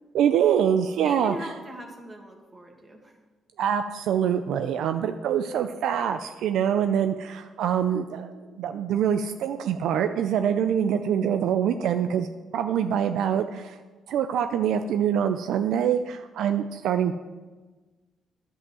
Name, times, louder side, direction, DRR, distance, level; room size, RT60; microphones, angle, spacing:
voice 1, 0.1-1.3 3.6-13.8 14.1-17.1, right 8 dB, 80° right, 8 dB, 0.4 m, -25 dB
voice 2, 1.0-3.2, right 1 dB, 25° right, 1 dB, 1.8 m, -41 dB
9.7 x 5.5 x 7.6 m, 1.3 s
cardioid pair, 90°, 0 cm